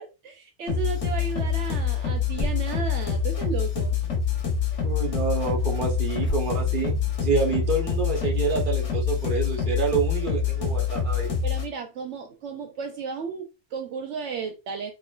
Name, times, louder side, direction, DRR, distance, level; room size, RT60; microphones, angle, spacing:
voice 1, 0.0-4.0 11.4-14.9, right 6 dB, 75° right, 0.9 m, -34 dB
sound 1, 0.7-11.7, left 7 dB, 85° left, 1.4 m, -26 dB
sound 2, 2.2-7.1, left 1 dB, 10° right, 0.7 m, -40 dB
voice 2, 4.8-11.3, right 5 dB, 45° right, 1.1 m, -27 dB
4.3 x 3.0 x 2.4 m
omnidirectional pair, 1.2 m